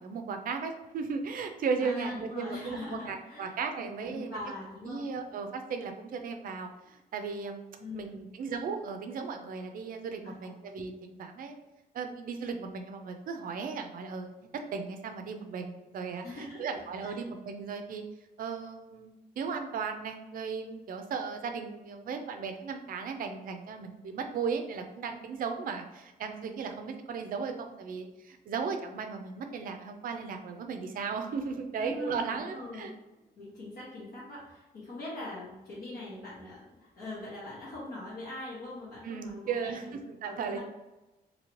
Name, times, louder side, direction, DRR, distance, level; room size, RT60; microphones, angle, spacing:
voice 1, 0.0-4.4 4.8-7.6 7.9-11.6 11.9-18.0 18.4-32.9 39.0-40.6, right 5 dB, 60° right, 5 dB, 0.4 m, -36 dB
voice 2, 1.8-3.5 3.7-5.0 7.8-8.2 10.2-10.5 16.2-17.2 31.8-32.9 33.4-40.0 40.2-40.6, left 2 dB, 60° left, -8 dB, 0.9 m, -42 dB
2.8 x 2.8 x 3.0 m, 1.0 s
wide cardioid pair, 175°, 17 cm